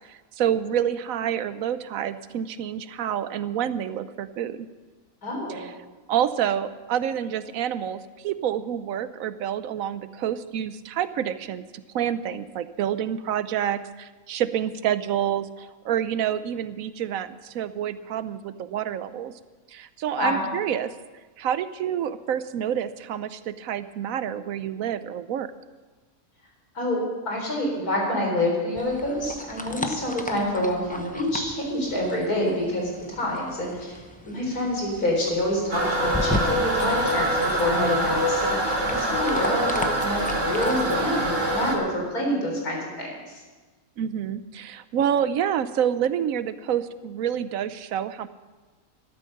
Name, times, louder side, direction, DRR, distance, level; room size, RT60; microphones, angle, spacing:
voice 1, 0.0-4.7 5.5-5.7 6.1-19.3 19.7-20.9 21.4-25.5 44.0-48.3, right 9 dB, 70° right, 13 dB, 1.0 m, -28 dB
voice 2, 5.2-5.7 20.2-20.4 26.7-43.4, left 1 dB, 85° left, -1 dB, 4.5 m, -27 dB
sound 1, 28.8-40.8, left 1 dB, 5° left, 0.7 m, -36 dB
Toilet flush, 35.7-41.8, right 1 dB, 50° right, 2.9 m, -24 dB
13.0 x 12.0 x 6.5 m, 1.3 s
omnidirectional pair, 1.6 m